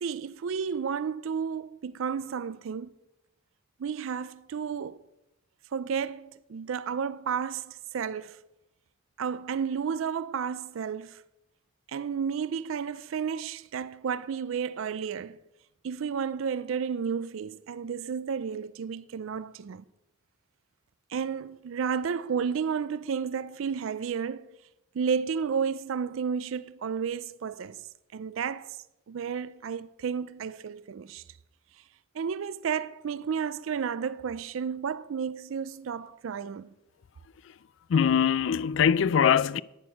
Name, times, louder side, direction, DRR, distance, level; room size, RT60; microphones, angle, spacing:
voice 1, 0.0-2.9 3.8-5.0 5.7-8.4 9.2-11.2 11.9-15.4 15.8-19.8 21.1-24.5 24.9-27.8 28.1-28.8 29.1-31.2 32.1-36.7, right 6 dB, 75° right, 0.4 m, -32 dB
voice 2, 37.9-39.6, left 7 dB, 65° left, 0.3 m, -22 dB
10.5 x 9.6 x 5.8 m
head